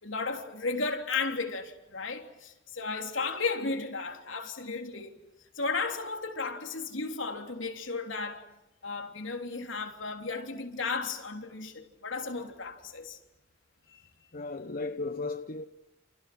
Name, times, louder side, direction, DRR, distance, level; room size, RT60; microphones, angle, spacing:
voice 1, 0.0-5.2 5.6-8.4 8.8-13.2 13.9-14.0, left 4 dB, 75° left, 3.4 m, -34 dB
voice 2, 14.3-15.6, left 3 dB, 50° left, 1.0 m, -35 dB
30.0 x 29.0 x 6.2 m
head